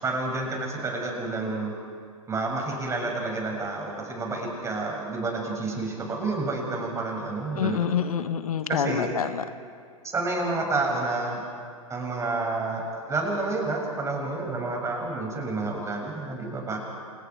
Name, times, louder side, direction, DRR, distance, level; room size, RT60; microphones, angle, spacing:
voice 1, 0.0-1.7 2.3-7.8 8.7-9.1 10.0-11.4 11.9-16.8, right 3 dB, 15° right, 0 dB, 6.9 m, -29 dB
voice 2, 7.5-9.4, left 8 dB, 75° left, 10 dB, 1.4 m, -27 dB
29.5 x 28.0 x 4.8 m, 2.2 s
hypercardioid pair, 115°, 19 cm